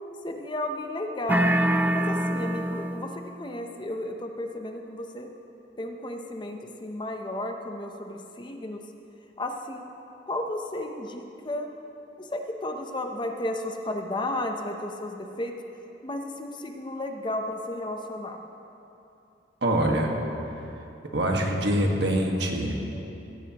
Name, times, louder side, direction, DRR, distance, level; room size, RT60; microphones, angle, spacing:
voice 1, 0.2-1.5 1.9-5.3 5.8-8.8 9.4-9.9 10.3-11.7 12.2-15.5 16.0-18.4, left 1 dB, 25° left, 4 dB, 0.7 m, -33 dB
sound 1, 1.3-3.2, right 1 dB, 10° right, 0.4 m, -24 dB
voice 2, 19.6-20.2 21.1-22.8, right 1 dB, 65° right, 0 dB, 1.6 m, -24 dB
16.0 x 15.0 x 3.0 m, 2.9 s
head